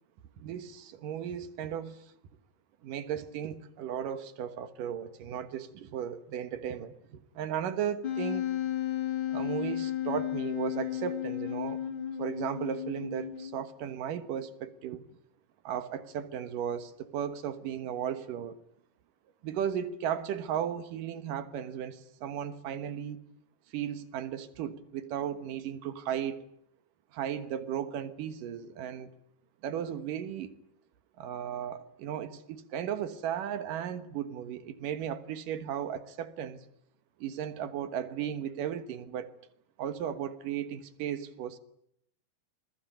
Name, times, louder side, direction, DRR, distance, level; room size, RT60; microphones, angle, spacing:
voice 1, 0.4-2.1 2.8-8.5 9.3-11.8 12.2-15.0 15.6-18.6 19.4-23.2 23.7-26.4 27.1-29.1 29.6-30.6 31.2-36.6 37.2-39.4 39.8-41.6, right 9 dB, 65° right, 2.8 m, -35 dB
Wind instrument woodwind instrument, 8.0-13.7, left 11 dB, 40° left, 2.7 m, -33 dB
27.0 x 21.0 x 9.0 m
omnidirectional pair, 4.4 m